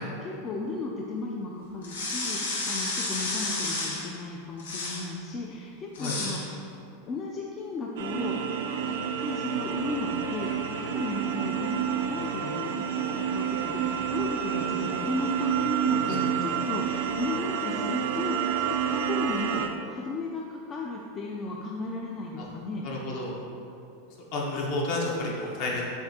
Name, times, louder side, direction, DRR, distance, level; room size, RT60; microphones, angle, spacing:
voice 1, 0.0-6.4 7.0-8.5 8.8-22.8, left 3 dB, 30° left, -2 dB, 0.3 m, -35 dB
sound 1, 1.8-4.1 4.6-5.1 5.9-6.4, left 2 dB, 90° left, 0.8 m, -31 dB
sound 2, 8.0-19.7, right 8 dB, 75° right, 0.3 m, -29 dB
voice 2, 22.8-23.3 24.3-25.9, left 2 dB, 55° left, -3 dB, 0.9 m, -30 dB
6.7 x 2.4 x 2.8 m, 2.7 s
supercardioid pair, 130°, 0 cm